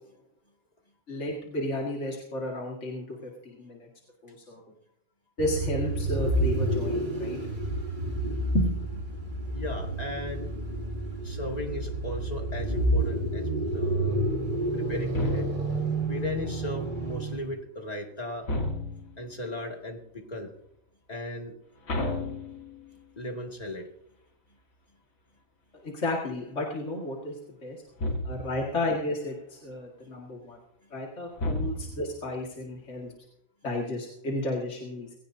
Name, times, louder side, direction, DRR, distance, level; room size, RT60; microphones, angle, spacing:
voice 1, 1.1-3.9 4.2-4.6 5.4-7.4 8.5-9.3 25.8-27.8 28.2-30.6 30.9-33.1 33.6-35.1, left 1 dB, 55° left, -1 dB, 2.4 m, -32 dB
sound 1, 5.4-17.6, right 1 dB, 35° right, 3.3 m, -29 dB
voice 2, 9.5-10.5 11.2-14.2 14.7-15.6 16.0-18.5 19.2-20.5 21.1-21.6 23.2-23.9, left 1 dB, 30° left, 2 dB, 2.4 m, -36 dB
sound 2, 15.1-15.9 18.4-19.3 21.9-23.0 28.0-28.7 31.4-32.2, left 1 dB, 70° left, 2.4 m, -32 dB
20.5 x 16.5 x 2.8 m, 0.77 s
omnidirectional pair, 1.5 m